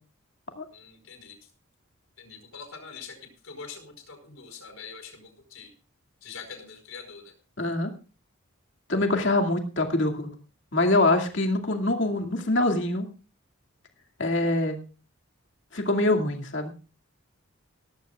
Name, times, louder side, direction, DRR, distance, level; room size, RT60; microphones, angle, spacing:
voice 1, 0.7-1.4 2.2-5.7 6.2-7.3, left 5 dB, 80° left, 6 dB, 4.9 m, -44 dB
voice 2, 7.6-7.9 8.9-10.3 10.7-13.1 14.2-14.8 15.7-16.7, left 2 dB, 60° left, 3 dB, 2.3 m, -24 dB
18.5 x 14.5 x 2.4 m, 0.35 s
head